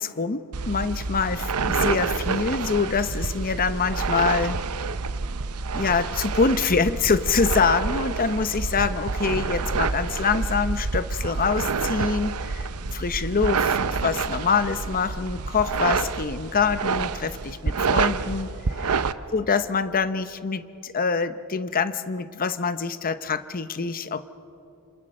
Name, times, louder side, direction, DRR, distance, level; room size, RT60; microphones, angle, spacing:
voice 1, 0.0-4.6 5.7-18.9 19.3-24.3, left 5 dB, 40° left, 12 dB, 0.8 m, -25 dB
sound 1, 0.5-19.1, right 4 dB, 80° right, 0.7 m, -28 dB
27.5 x 26.5 x 6.4 m, 2.8 s
head